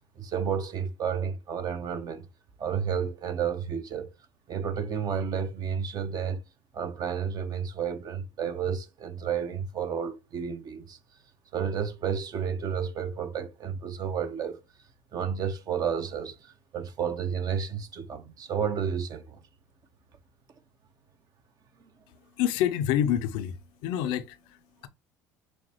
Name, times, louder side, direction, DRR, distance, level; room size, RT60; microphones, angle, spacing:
voice 1, 0.2-2.3 2.6-4.1 4.5-6.4 6.7-11.0 11.5-14.6 15.1-19.4, right 7 dB, 45° right, 0.9 m, -31 dB
voice 2, 22.4-24.9, left 10 dB, 70° left, 0.5 m, -28 dB
6.2 x 2.2 x 3.0 m
hypercardioid pair, 75°, 9 cm